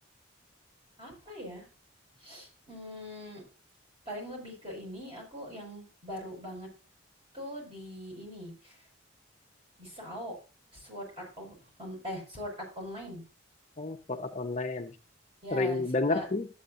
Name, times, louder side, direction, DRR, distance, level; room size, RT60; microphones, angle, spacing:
voice 1, 1.0-1.7 2.2-3.4 4.1-6.7 7.3-8.7 9.8-10.4 10.7-13.2 15.4-16.3, equal, 25° right, -2 dB, 5.4 m, -41 dB
voice 2, 13.8-14.9 15.5-16.5, left 3 dB, 35° left, 5 dB, 0.6 m, -30 dB
12.5 x 8.5 x 2.5 m, 0.33 s
head